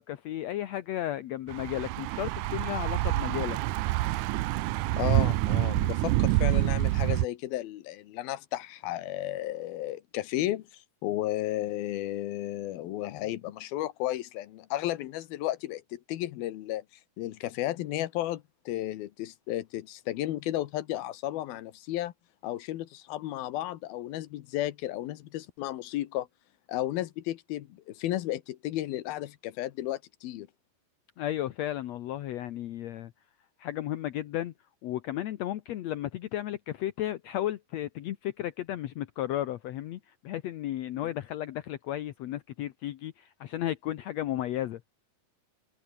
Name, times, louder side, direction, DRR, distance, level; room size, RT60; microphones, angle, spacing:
voice 1, 0.0-3.6 31.2-33.1 33.6-34.5 34.8-44.8, left 13 dB, 70° left, 1.7 m, -34 dB
Thunder / Bicycle, 1.5-7.2, right 17 dB, 80° right, 1.8 m, -27 dB
voice 2, 5.0-16.8 17.2-22.1 22.4-26.3 26.7-30.5, left 14 dB, 85° left, 3.0 m, -33 dB
omnidirectional pair, 4.2 m